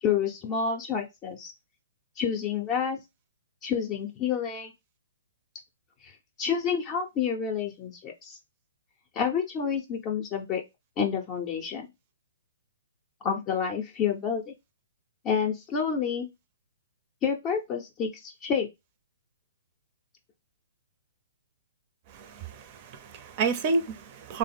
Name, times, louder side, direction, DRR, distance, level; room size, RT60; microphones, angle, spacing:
voice 1, 0.0-1.5 2.2-3.0 3.6-4.7 6.0-6.1 6.4-8.4 9.1-10.6 11.0-11.9 13.2-14.5 15.2-16.3 17.2-18.7, left 7 dB, 30° left, 0.6 m, -29 dB
voice 2, 22.1-24.4, right 4 dB, 35° right, 0.6 m, -30 dB
3.6 x 2.0 x 3.4 m
figure-of-eight pair, 120°, 0 cm